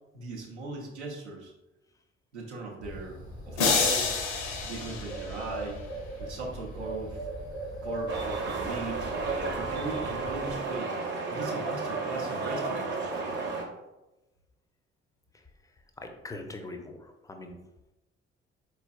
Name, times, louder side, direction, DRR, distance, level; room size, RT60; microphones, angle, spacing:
voice 1, 0.1-1.5 2.3-3.2 3.5-4.2 4.6-5.8 6.2-7.2 7.8-9.1 9.5-10.9 11.3-12.9, right 3 dB, 80° right, 0 dB, 0.6 m, -38 dB
Bird, 2.8-10.6, right 1 dB, 90° left, 1.0 m, -40 dB
sound 1, 3.6-5.9, left 4 dB, 60° left, 0.7 m, -28 dB
sound 2, 8.1-13.6, right 3 dB, 35° right, 0.7 m, -32 dB
voice 2, 16.0-17.6, left 2 dB, 10° left, 5 dB, 0.4 m, -42 dB
4.0 x 3.2 x 2.3 m, 0.99 s
figure-of-eight pair, 45°, 33 cm